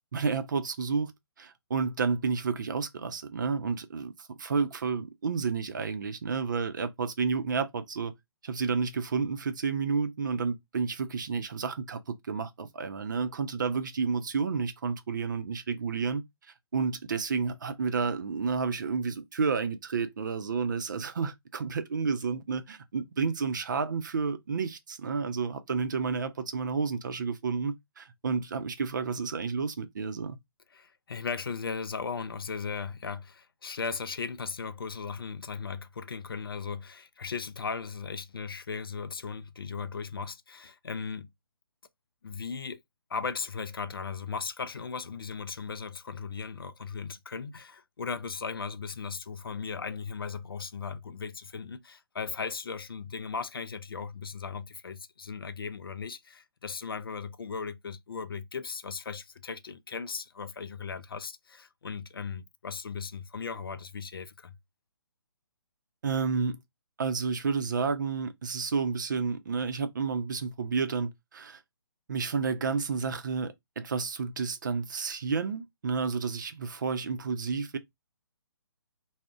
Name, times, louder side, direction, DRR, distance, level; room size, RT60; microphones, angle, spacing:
voice 1, 0.1-1.1 1.4-8.1 8.4-16.2 16.7-30.4 66.0-66.6 67.0-71.6 72.1-77.8, right 5 dB, 50° right, 0.5 m, -31 dB
voice 2, 30.7-41.3 42.2-42.8 43.1-64.6, left 5 dB, 65° left, 0.4 m, -37 dB
2.4 x 2.1 x 3.6 m
figure-of-eight pair, 135°, 13 cm